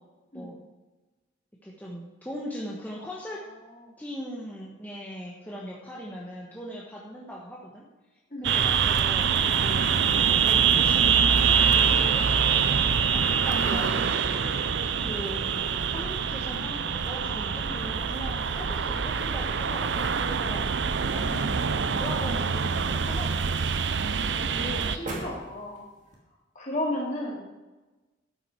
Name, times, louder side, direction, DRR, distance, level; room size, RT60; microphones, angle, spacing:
voice 1, 1.6-3.4 4.0-7.9 8.4-9.9 10.4-12.6 13.1-14.4 15.0-15.4 15.9-23.7, equal, 10° left, -4 dB, 1.3 m, -40 dB
voice 2, 3.5-4.0 8.3-8.5 11.9-12.1 13.1-13.3 15.0-15.1 21.1-21.4 24.3-25.8 26.5-27.4, left 1 dB, 40° left, -3 dB, 3.1 m, -35 dB
sound 1, 8.4-25.0, right 6 dB, 65° right, 0.6 m, -25 dB
sound 2, 21.3-26.2, right 1 dB, 40° right, 2.3 m, -44 dB
12.5 x 9.1 x 4.6 m, 1.2 s
head